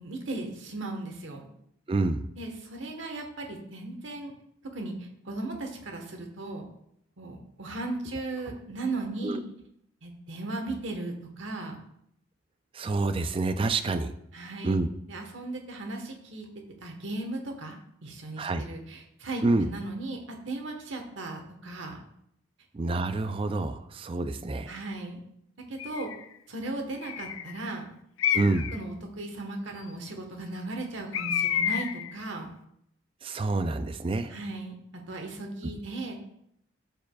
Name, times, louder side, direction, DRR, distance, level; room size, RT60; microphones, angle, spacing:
voice 1, 0.0-1.5 2.4-4.3 4.7-6.6 7.2-9.4 10.0-11.8 14.3-14.8 15.1-16.5 16.8-22.0 24.7-25.2 25.7-26.1 26.5-27.9 28.7-32.5 34.3-36.2, right 2 dB, 60° right, 3 dB, 1.2 m, -36 dB
voice 2, 1.9-2.2 9.2-9.4 12.7-14.1 14.6-14.9 18.4-18.6 19.4-19.7 22.7-24.7 28.3-28.7 33.2-34.3, right 3 dB, 25° right, 9 dB, 0.3 m, -27 dB
Bird, 25.8-26.2 27.0-27.6 28.2-28.8 31.1-32.1, left 9 dB, 70° left, 0.3 m, -29 dB
12.0 x 4.7 x 2.3 m, 0.74 s
head